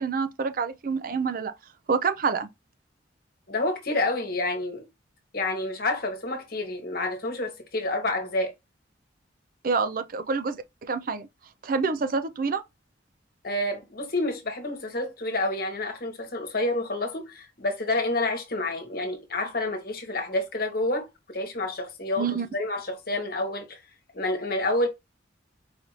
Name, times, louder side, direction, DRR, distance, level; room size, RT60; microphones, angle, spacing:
voice 1, 0.0-1.5 1.9-2.5 9.6-11.3 11.6-12.6 22.2-22.5, right 5 dB, 50° right, 0.4 m, -27 dB
voice 2, 3.5-4.8 5.3-8.5 13.4-23.8 24.1-24.9, left 2 dB, 55° left, 1.2 m, -29 dB
4.9 x 2.6 x 3.0 m
head